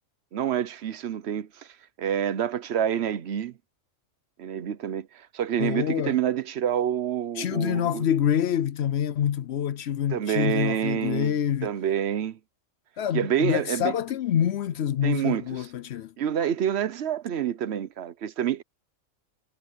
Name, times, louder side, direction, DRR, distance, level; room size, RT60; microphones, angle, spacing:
voice 1, 0.3-3.5 4.4-8.1 10.1-12.4 13.1-13.9 15.0-15.7 16.2-18.6, right 9 dB, 60° right, 1.0 m, -28 dB
voice 2, 5.6-6.2 7.4-11.7 13.0-16.1, left 9 dB, 65° left, 0.8 m, -26 dB
omnidirectional pair, 1.4 m